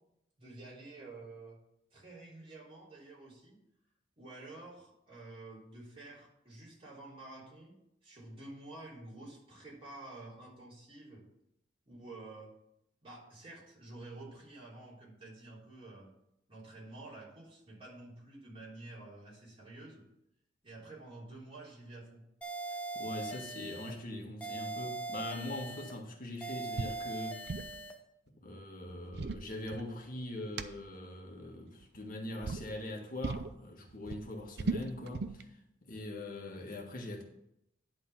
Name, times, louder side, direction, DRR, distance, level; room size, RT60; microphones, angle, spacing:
voice 1, 0.4-1.6 1.9-3.6 4.2-7.8 8.0-11.2 11.9-12.5 13.0-16.1 16.5-20.0 20.6-22.2, right 2 dB, 30° right, 3.6 m, -50 dB
sound 1, 22.4-24.0 24.4-26.0 26.4-28.0, right 3 dB, 5° left, 0.9 m, -41 dB
voice 2, 22.9-27.7 28.3-35.5 35.8-37.2, left 1 dB, 50° left, 1.5 m, -42 dB
sound 2, 26.8-27.0 27.3-27.8 28.9-30.2 30.6-30.7 31.7-32.1 32.4-32.7 33.2-33.5 33.9-35.4, right 4 dB, 60° right, 0.5 m, -37 dB
10.5 x 3.8 x 7.1 m
head